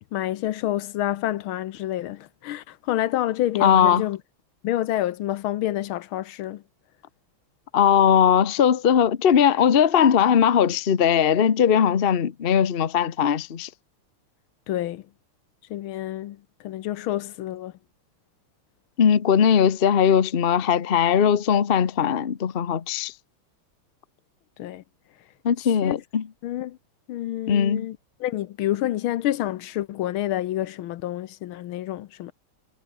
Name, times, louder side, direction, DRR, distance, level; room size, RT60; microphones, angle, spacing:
voice 1, 0.1-4.2 4.6-6.6 14.7-15.0 15.7-16.4 16.6-17.7 24.6-24.8 25.8-26.0 26.4-26.8 27.1-32.3, left 13 dB, 75° left, 1.5 m, -28 dB
voice 2, 3.6-4.1 7.7-13.7 19.0-23.1 25.4-26.3 27.5-27.9, left 8 dB, 45° left, 0.7 m, -19 dB
omnidirectional pair, 2.4 m